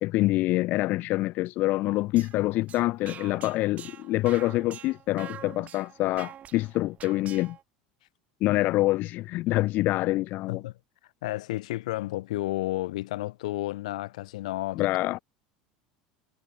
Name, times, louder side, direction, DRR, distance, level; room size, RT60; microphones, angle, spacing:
voice 1, 0.0-7.6 8.4-10.6 14.7-15.2, left 18 dB, 55° left, 0.6 m, -26 dB
sound 1, 1.9-7.6, right 10 dB, 40° right, 6.0 m, -46 dB
voice 2, 11.2-14.9, left 17 dB, 75° left, 3.8 m, -32 dB
hypercardioid pair, 85°, 4 cm